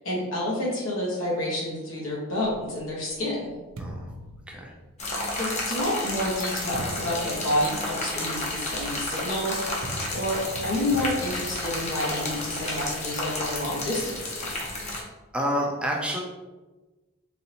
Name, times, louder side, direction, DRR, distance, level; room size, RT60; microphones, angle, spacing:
voice 1, 0.0-3.5 5.3-14.6, left 1 dB, 90° left, -4 dB, 1.3 m, -29 dB
sound 1, 2.4-5.2 6.0-13.0, right 1 dB, 90° right, 0.4 m, -42 dB
voice 2, 3.8-4.1 4.5-4.7 15.3-16.2, equal, 5° right, -1 dB, 0.5 m, -28 dB
sound 2, 5.0-15.0, left 2 dB, 35° left, 0.7 m, -31 dB
4.0 x 2.6 x 2.8 m, 1.2 s
head